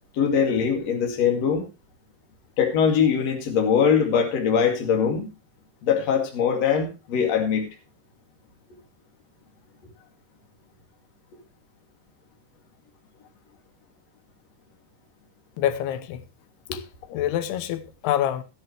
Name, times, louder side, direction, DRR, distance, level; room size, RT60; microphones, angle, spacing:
voice 1, 0.1-1.6 2.6-5.3 5.8-7.7, left 7 dB, 45° left, 3.2 m, -22 dB
voice 2, 15.6-16.2 16.7-16.8 17.1-18.4, left 11 dB, 90° left, 3.0 m, -26 dB
14.5 x 10.0 x 3.3 m
omnidirectional pair, 4.5 m